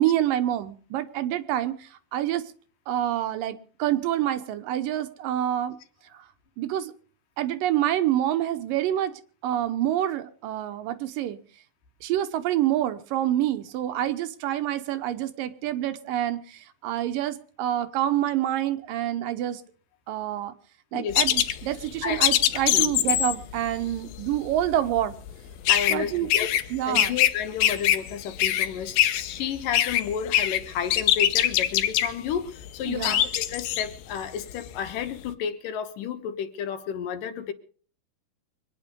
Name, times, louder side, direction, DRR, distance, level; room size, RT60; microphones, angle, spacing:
voice 1, 0.0-2.4 2.9-5.8 6.1-6.2 6.6-6.9 7.4-11.4 12.0-19.6 20.1-20.5 20.9-25.2 25.9-26.3 26.7-27.1 32.9-33.2, right 12 dB, 75° right, 11 dB, 2.6 m, -27 dB
sound 1, 21.1-27.3 27.6-34.9, left 12 dB, 90° left, 2.7 m, -23 dB
voice 2, 25.7-26.5 26.8-37.5, left 8 dB, 75° left, 8 dB, 2.8 m, -31 dB
24.0 x 10.0 x 5.3 m, 0.43 s
omnidirectional pair, 4.0 m